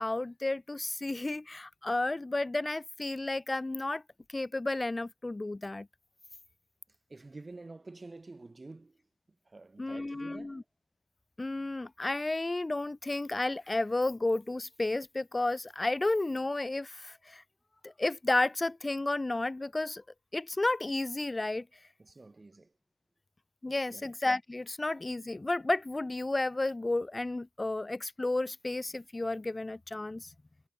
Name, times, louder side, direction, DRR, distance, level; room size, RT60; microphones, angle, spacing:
voice 1, 0.0-4.0 4.3-5.9 9.8-10.6 11.4-17.4 17.8-20.0 20.3-21.7 23.6-30.3, left 2 dB, 25° left, 0.4 m, -32 dB
voice 2, 6.9-9.0 9.4-10.6 22.0-22.7 23.7-24.1, right 3 dB, 30° right, 7.9 m, -49 dB
cardioid pair, 80°, 0 cm